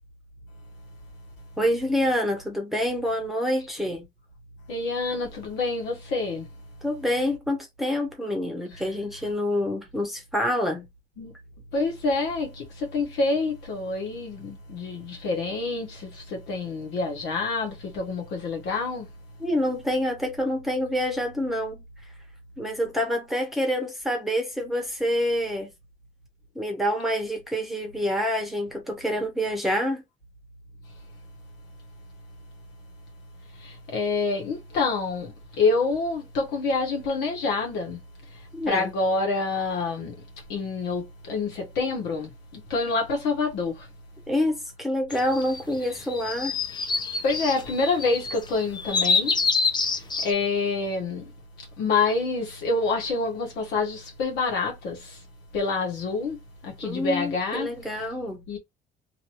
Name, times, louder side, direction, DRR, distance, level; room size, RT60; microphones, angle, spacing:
voice 1, 1.6-4.1 6.8-10.8 19.4-21.8 22.6-25.7 26.5-30.0 38.5-38.9 44.3-46.6 56.8-58.4, equal, ahead, 1.0 m, -27 dB
voice 2, 4.7-6.5 8.7-8.8 11.2-11.3 11.7-19.1 33.5-38.0 38.3-40.2 40.5-43.9 47.2-49.4 50.2-51.3 51.6-55.2 55.5-57.7 58.5-58.6, left 3 dB, 85° left, 1.2 m, -27 dB
sound 1, 45.1-50.3, left 4 dB, 25° left, 0.6 m, -26 dB
2.6 x 2.6 x 3.0 m
cardioid pair, 110°, 17 cm